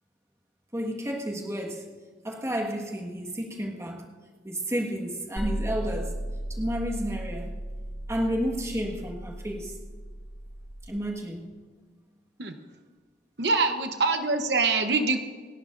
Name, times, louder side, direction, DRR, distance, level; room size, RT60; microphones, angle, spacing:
voice 1, 0.7-1.9 2.2-4.1 4.4-6.2 6.5-7.6 8.1-9.7 10.9-11.6, equal, 15° right, 0 dB, 1.6 m, -31 dB
sound 1, 5.4-10.9, equal, 5° left, 2.1 m, -35 dB
voice 2, 13.4-15.2, right 3 dB, 70° right, 6 dB, 0.9 m, -24 dB
28.0 x 11.5 x 2.6 m, 1.5 s
head